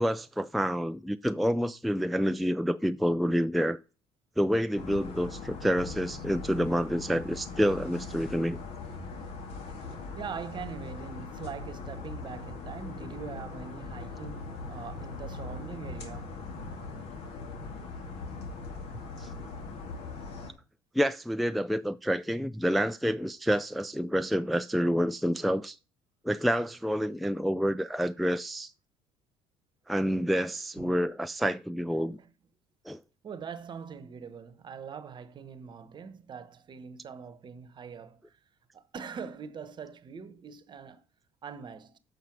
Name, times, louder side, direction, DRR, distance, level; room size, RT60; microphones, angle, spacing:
voice 1, 0.0-3.8 4.4-8.6 19.2-19.3 20.9-25.8 26.2-28.7 29.9-32.2 32.9-33.0, equal, ahead, 0.4 m, -28 dB
sound 1, 4.8-20.5, left 4 dB, 65° left, 2.1 m, -40 dB
voice 2, 10.1-16.4 30.8-31.0 32.2-32.3 33.2-38.3 38.7-41.0 41.4-42.0, right 6 dB, 40° right, 1.1 m, -42 dB
7.6 x 5.5 x 7.3 m
hypercardioid pair, 70°, 11 cm